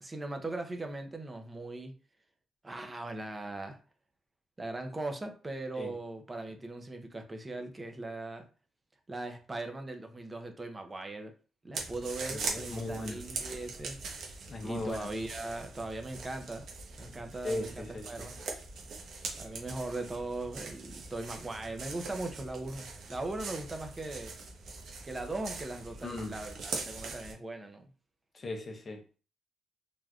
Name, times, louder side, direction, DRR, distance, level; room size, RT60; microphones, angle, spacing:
voice 1, 0.0-1.9 2.6-3.8 4.6-8.5 9.1-11.3 11.6-14.0 14.6-16.7 17.0-18.4 19.4-24.3 25.0-27.9, right 2 dB, 20° right, 0.6 m, -39 dB
sound 1, 11.7-27.3, right 4 dB, 65° right, 0.9 m, -42 dB
voice 2, 12.2-13.2 14.5-15.1 17.4-18.3 26.0-26.3 28.3-29.2, left 2 dB, 35° left, 0.7 m, -38 dB
3.4 x 2.5 x 2.3 m
cardioid pair, 90°, 0 cm